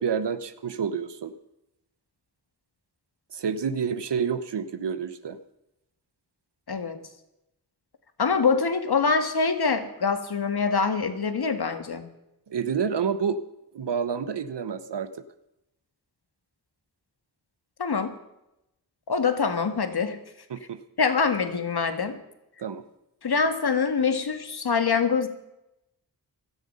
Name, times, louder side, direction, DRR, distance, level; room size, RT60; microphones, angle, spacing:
voice 1, 0.0-1.3 3.3-5.4 12.5-13.4 13.7-15.1 20.5-20.8 22.6-22.8, right 6 dB, 75° right, 12 dB, 1.1 m, -28 dB
voice 2, 6.7-7.0 8.2-12.1 17.8-18.2 19.1-20.2 21.0-22.2 23.2-25.3, left 5 dB, 65° left, 8 dB, 1.7 m, -24 dB
17.0 x 12.5 x 5.6 m, 0.89 s
cardioid pair, 55°, 41 cm